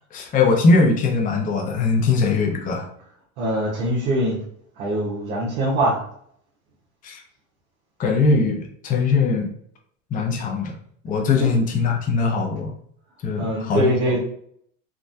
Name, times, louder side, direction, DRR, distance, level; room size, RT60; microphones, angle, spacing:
voice 1, 0.1-2.9 7.0-7.2 8.0-9.5 10.1-10.8 11.0-12.7 13.2-14.2, left 4 dB, 20° left, 2 dB, 0.5 m, -21 dB
voice 2, 3.4-4.4 4.8-6.0 11.4-11.5 13.4-14.2, right 1 dB, 75° right, -5 dB, 1.1 m, -22 dB
3.4 x 2.1 x 2.6 m, 0.66 s
supercardioid pair, 110°, 44 cm